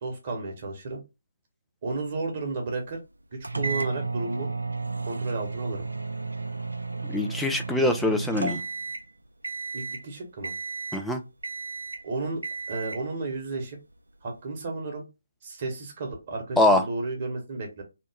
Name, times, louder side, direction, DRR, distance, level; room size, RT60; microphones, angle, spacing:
voice 1, 0.0-1.0 1.8-3.0 3.5-4.5 5.0-5.9 9.7-10.5 12.0-12.4 12.7-13.8 14.2-15.1 15.4-17.8, right 3 dB, 35° right, 1 dB, 1.1 m, -32 dB
sound 1, 3.4-9.1 9.4-10.0 10.4-11.1 11.4-12.0 12.4-13.1, right 3 dB, 75° right, 0.4 m, -33 dB
voice 2, 7.1-8.6 10.9-11.2 16.6-16.8, left 2 dB, 5° left, 4 dB, 0.3 m, -23 dB
2.9 x 2.1 x 3.4 m, 0.25 s
figure-of-eight pair, 145°, 0 cm